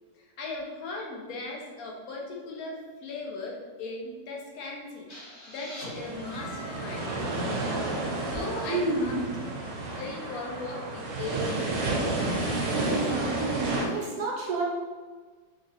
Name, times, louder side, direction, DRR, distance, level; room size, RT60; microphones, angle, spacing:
voice 1, 0.1-5.1 5.5-7.0 8.1-9.3 9.9-11.5, left 2 dB, 65° left, -2 dB, 1.1 m, -38 dB
sound 1, 5.1-8.8, left 1 dB, 45° left, 1.4 m, -45 dB
sound 2, 6.0-13.9, right 2 dB, 90° right, 1.4 m, -31 dB
voice 2, 8.7-9.3 12.9-14.6, right 3 dB, 65° right, -3 dB, 1.2 m, -30 dB
3.9 x 2.8 x 2.9 m, 1.4 s
omnidirectional pair, 1.8 m